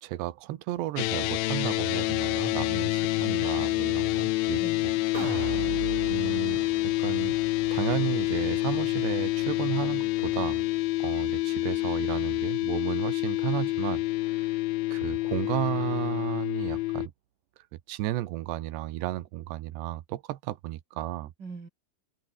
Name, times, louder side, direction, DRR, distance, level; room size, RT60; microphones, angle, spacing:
voice 1, 0.0-4.6 5.3-5.5 6.1-6.6 7.0-7.4 7.7-10.6 11.0-14.6 14.9-17.1 17.9-21.3, right 15 dB, 80° right, 3.4 m, -33 dB
sound 1, 1.0-17.1, left 19 dB, 85° left, 2.2 m, -28 dB
voice 2, 2.7-3.5 4.6-5.0 21.4-21.7, right 4 dB, 30° right, 2.8 m, -44 dB
sound 2, 5.1-11.4 11.8-11.9, right 13 dB, 65° right, 2.2 m, -41 dB
omnidirectional pair, 4.9 m